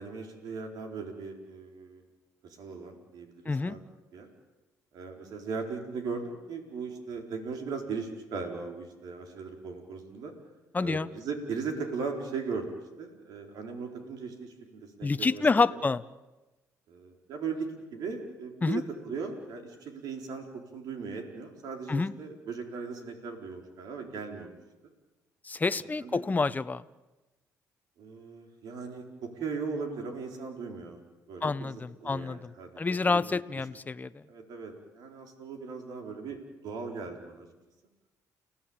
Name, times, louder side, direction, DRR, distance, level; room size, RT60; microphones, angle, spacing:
voice 1, 0.0-2.0 2.4-3.8 4.1-4.3 4.9-10.3 10.8-15.7 16.9-24.5 26.0-26.2 28.0-31.0 31.3-33.2 34.3-37.5, right 5 dB, 80° right, 3 dB, 4.4 m, -38 dB
voice 2, 3.4-3.8 10.7-11.1 15.0-16.0 18.6-18.8 21.9-22.1 25.4-26.8 31.4-32.5 32.8-34.2, left 4 dB, 25° left, 13 dB, 0.9 m, -28 dB
30.0 x 17.5 x 8.9 m, 1.1 s
cardioid pair, 80°, 7 cm